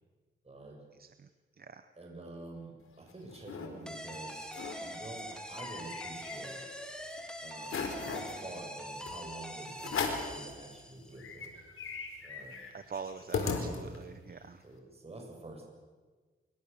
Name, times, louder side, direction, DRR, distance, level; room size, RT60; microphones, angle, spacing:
voice 1, 0.4-0.8 2.0-4.5 4.8-6.7 7.4-11.6 12.2-12.5 14.6-15.7, right 2 dB, 30° right, 1 dB, 7.2 m, -47 dB
voice 2, 1.6-1.9 12.7-14.6, right 5 dB, 45° right, 10 dB, 1.1 m, -44 dB
sound 1, 2.9-3.7 4.1-4.2 4.4-4.8 5.2-6.8 7.2-7.3 7.6-8.3 9.1-9.2 9.8-10.4 10.8-10.9 11.2-14.2, left 5 dB, 80° left, 4.2 m, -37 dB
sound 2, 3.9-11.2, equal, 5° left, 3.8 m, -44 dB
27.0 x 23.5 x 7.0 m, 1.4 s
cardioid pair, 80°, 21 cm